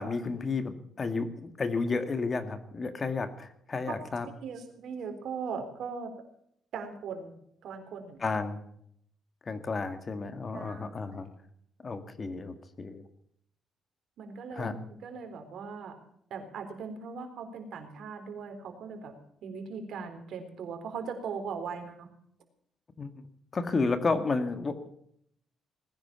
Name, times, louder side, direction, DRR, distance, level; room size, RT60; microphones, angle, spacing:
voice 1, 0.0-4.3 8.2-8.6 9.5-11.3 11.8-13.0 14.5-14.7 23.0-23.1 23.5-24.9, left 4 dB, 35° left, 9 dB, 1.9 m, -32 dB
voice 2, 4.4-6.1 6.7-7.3 7.6-8.3 10.5-10.8 14.2-15.9 16.3-22.1, right 5 dB, 70° right, 6 dB, 3.8 m, -39 dB
19.5 x 10.5 x 7.0 m, 0.70 s
cardioid pair, 90°, 0 cm